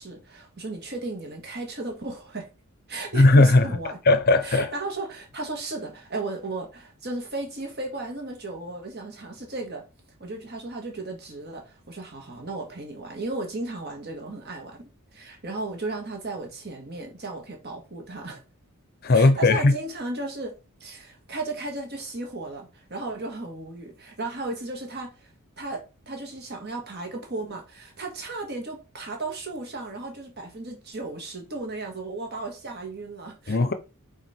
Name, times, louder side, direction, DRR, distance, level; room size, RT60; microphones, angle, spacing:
voice 1, 0.0-2.5 2.9-4.0 4.4-9.8 10.2-18.4 19.1-25.3 25.6-33.6, right 2 dB, 50° right, 1.8 m, -35 dB
voice 2, 3.1-3.7 4.1-4.7 19.0-19.7 33.5-33.7, left 2 dB, 45° left, 0.7 m, -17 dB
5.8 x 4.1 x 4.4 m
head